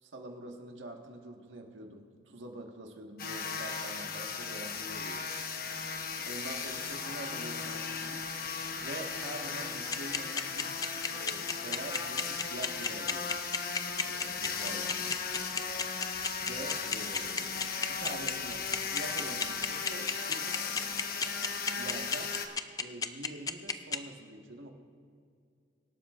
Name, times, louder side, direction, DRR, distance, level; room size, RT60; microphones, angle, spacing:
voice 1, 0.0-5.3 6.3-8.3 8.8-10.8 11.1-13.4 14.0-15.1 16.4-17.5 18.0-20.6 21.7-22.3 22.8-24.7, right 2 dB, 85° right, 2 dB, 1.5 m, -45 dB
sound 1, 3.2-22.5, left 5 dB, 50° left, 1.0 m, -36 dB
sound 2, 9.9-24.0, left 5 dB, 20° left, 0.4 m, -31 dB
25.0 x 12.0 x 2.5 m, 2.3 s
head